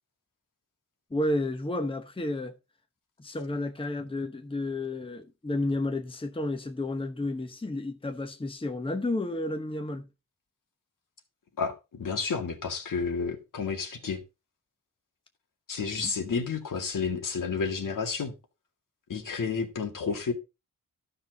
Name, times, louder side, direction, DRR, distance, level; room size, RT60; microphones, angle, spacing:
voice 1, 1.1-2.6 3.2-10.1 16.0-16.1, left 2 dB, 15° left, 0.9 m, -31 dB
voice 2, 11.6-14.2 15.7-18.3 19.1-20.3, left 5 dB, 70° left, 2.1 m, -31 dB
12.0 x 5.7 x 3.9 m
cardioid pair, 80°, 33 cm